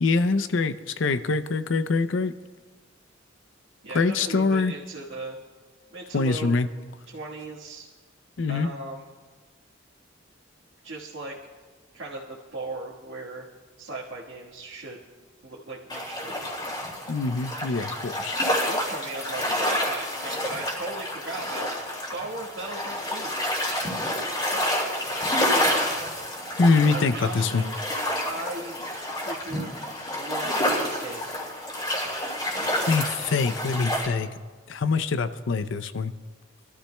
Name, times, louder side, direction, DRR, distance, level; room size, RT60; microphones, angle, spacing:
voice 1, 0.0-2.3 3.9-4.7 6.1-6.7 8.4-8.7 17.1-18.4 26.6-27.6 32.7-34.3 34.7-36.1, left 4 dB, 70° left, 12 dB, 0.6 m, -24 dB
voice 2, 3.8-5.4 5.9-6.5 7.1-7.9 8.5-9.1 10.8-11.3 11.9-13.4 13.8-15.0 15.4-16.4 18.7-21.7 22.0-23.3 26.9-27.7 28.2-28.7 29.1-29.8 30.1-31.3 32.6-32.7, right 2 dB, 75° right, -6 dB, 1.5 m, -37 dB
sound 1, 15.9-34.1, left 1 dB, 25° left, 2.4 m, -29 dB
25.0 x 13.0 x 2.2 m, 1.4 s
head